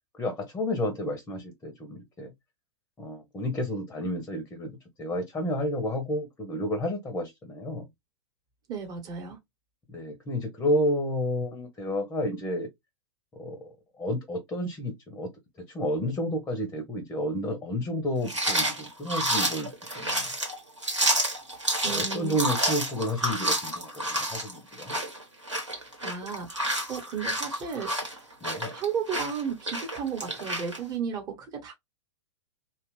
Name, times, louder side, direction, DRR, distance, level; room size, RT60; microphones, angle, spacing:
voice 1, 0.1-2.3 3.0-4.7 5.0-7.9 9.9-12.7 13.4-13.6 14.0-15.3 15.7-19.7 20.0-20.3 21.8-25.0 28.4-28.7, left 1 dB, 10° left, 0.8 m, -31 dB
voice 2, 8.7-9.4 21.8-22.4 26.0-28.3 28.7-31.7, right 6 dB, 25° right, 1.1 m, -34 dB
sound 1, 18.2-30.8, right 1 dB, 90° right, 1.5 m, -29 dB
2.8 x 2.4 x 3.0 m
figure-of-eight pair, 100°, 15 cm